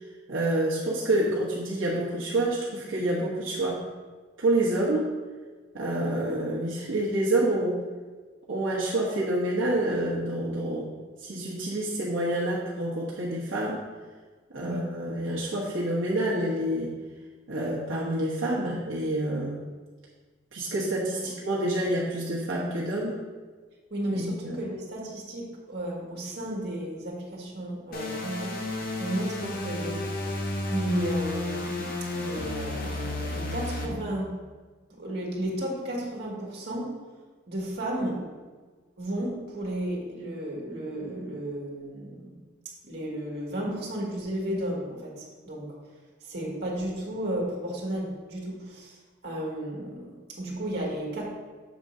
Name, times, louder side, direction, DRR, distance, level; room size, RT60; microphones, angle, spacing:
voice 1, 0.3-3.8 4.4-5.1 5.7-7.8 8.5-10.9 11.2-13.8 14.5-16.9 17.5-19.6 20.5-23.2 24.1-24.5, right 1 dB, 75° right, -5 dB, 1.1 m, -28 dB
voice 2, 23.9-28.6 29.0-30.1 30.7-34.4 34.9-36.9 37.5-38.2 39.0-42.4 42.8-45.7 46.2-49.0 49.2-51.2, right 1 dB, 55° right, -3 dB, 1.7 m, -33 dB
sound 1, 27.9-33.9, left 2 dB, 45° left, 0.9 m, -32 dB
7.3 x 3.7 x 5.4 m, 1.4 s
head